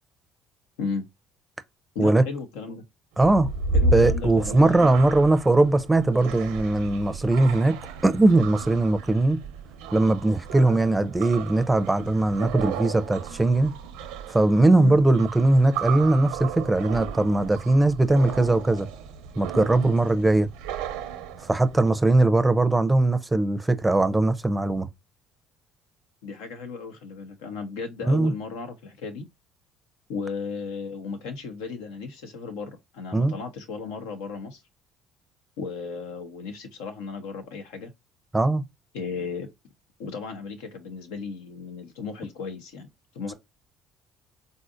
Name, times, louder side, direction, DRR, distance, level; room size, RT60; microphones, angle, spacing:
voice 1, 1.9-2.8 3.7-4.9 14.7-15.0 26.2-29.2 30.1-34.6 35.6-37.9 38.9-39.5 40.0-42.9 43.1-43.3, left 4 dB, 85° left, 0.7 m, -35 dB
voice 2, 3.2-3.5 3.9-7.8 8.0-9.4 9.9-13.7 14.3-18.9 19.4-20.5 21.4-24.9 28.0-28.3 33.1-33.3 38.3-38.6, right 2 dB, 15° right, 0.5 m, -20 dB
sound 1, 3.2-21.9, right 3 dB, 85° right, 0.6 m, -33 dB
3.8 x 2.4 x 2.5 m
supercardioid pair, 75°, 0 cm